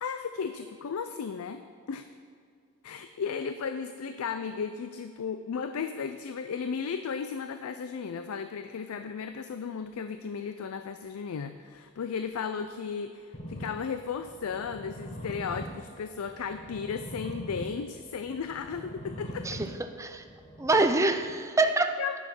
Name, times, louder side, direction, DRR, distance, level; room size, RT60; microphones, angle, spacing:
voice 1, 0.0-2.1 2.8-19.6 22.0-22.2, left 6 dB, 75° left, 9 dB, 0.4 m, -35 dB
sound 1, 13.3-21.3, equal, 30° left, 1.0 m, -43 dB
voice 2, 19.4-20.2 20.6-22.0, right 2 dB, 15° right, 7 dB, 0.5 m, -26 dB
9.9 x 6.4 x 5.9 m, 2.2 s
head